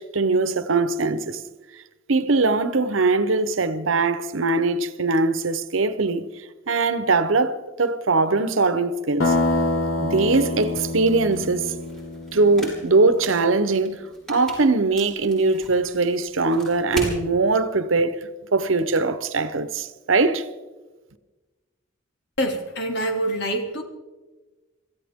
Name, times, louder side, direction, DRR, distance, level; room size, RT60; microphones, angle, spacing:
voice 1, 0.0-1.4 2.1-9.3 10.0-11.7 12.3-14.0 14.3-20.5, right 3 dB, 80° right, 1.0 m, -21 dB
sound 1, 9.2-13.0, left 2 dB, 85° left, 1.8 m, -26 dB
sound 2, 10.5-17.2, right 1 dB, 5° left, 6.4 m, -38 dB
voice 2, 22.4-23.8, right 1 dB, 60° left, 2.7 m, -25 dB
26.0 x 15.0 x 3.7 m
head